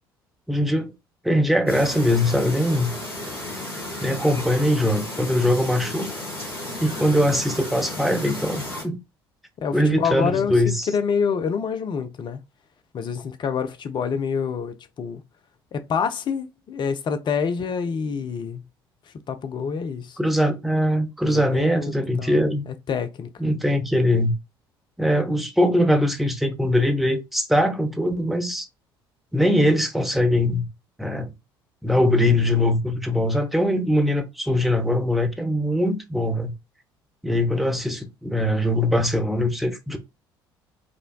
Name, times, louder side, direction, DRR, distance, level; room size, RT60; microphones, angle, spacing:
voice 1, 0.5-0.9 1.2-2.9 4.0-6.1 6.8-9.0 9.7-10.9 20.2-22.6 23.4-24.3 25.0-28.7 29.3-30.7 31.0-31.3 31.8-36.5 37.2-40.0, left 1 dB, ahead, 0.8 m, -21 dB
Chirp tweet, 1.7-8.8, left 1 dB, 90° left, 1.8 m, -33 dB
voice 2, 9.6-12.4 12.9-15.2 15.7-18.6 19.3-20.2 21.2-22.5 22.9-23.3, left 6 dB, 40° left, 0.6 m, -27 dB
4.9 x 2.2 x 2.2 m
figure-of-eight pair, 55°, 12 cm